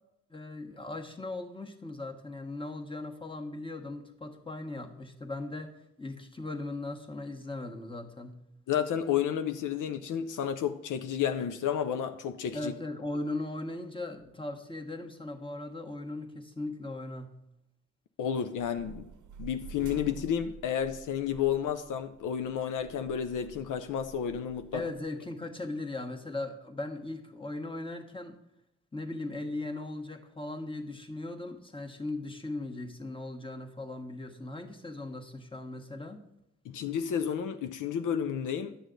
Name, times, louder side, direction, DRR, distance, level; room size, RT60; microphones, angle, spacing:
voice 1, 0.3-5.7 6.0-8.4 12.5-17.4 24.7-28.4 28.9-36.2, left 2 dB, 15° left, 1.3 m, -38 dB
voice 2, 8.7-12.7 18.2-19.1 19.4-24.9 36.6-38.8, left 8 dB, 85° left, 0.5 m, -31 dB
sound 1, 18.6-25.0, right 6 dB, 75° right, 0.7 m, -49 dB
10.0 x 6.3 x 3.9 m
cardioid pair, 55°, 30 cm